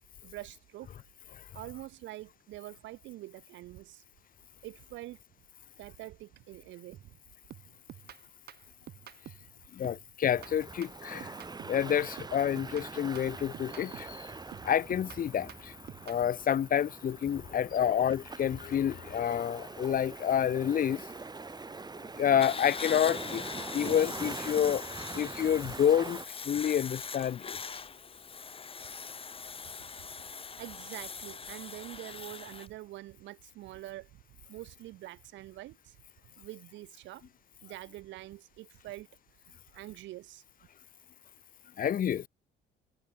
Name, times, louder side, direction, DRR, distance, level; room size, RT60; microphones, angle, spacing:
voice 1, 0.2-0.9 1.5-4.0 4.6-5.2 5.8-7.1 12.4-12.6 17.7-17.9 30.6-34.2 34.5-36.0 36.4-37.2 37.6-39.1 39.7-40.4, right 16 dB, 75° right, 5.7 m, -45 dB
sound 1, 6.9-7.2 7.5-9.5 9.8-11.9 12.2-14.2 14.5-16.3, right 11 dB, 55° right, 3.3 m, -50 dB
voice 2, 9.8-11.3 11.7-14.1 14.7-15.5 16.1-21.0 22.2-23.4 23.7-24.8 25.2-26.2 26.5-27.6 41.8-42.3, left 9 dB, 45° left, 1.8 m, -28 dB
sound 2, 10.4-26.3, right 4 dB, 20° right, 4.5 m, -44 dB
sound 3, 22.4-32.7, left 5 dB, 30° left, 4.2 m, -42 dB
cardioid pair, 105°, 19 cm